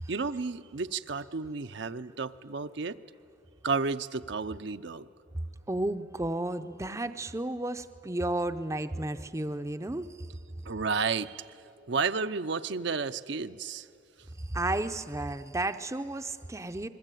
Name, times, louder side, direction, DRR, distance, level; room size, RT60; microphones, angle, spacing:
voice 1, 0.1-3.0 3.6-5.1 10.7-11.5 11.8-13.9, right 4 dB, 55° right, 10 dB, 0.6 m, -32 dB
voice 2, 5.7-10.4 14.4-16.9, right 2 dB, 15° right, 9 dB, 0.6 m, -33 dB
28.5 x 21.0 x 9.2 m, 2.5 s
head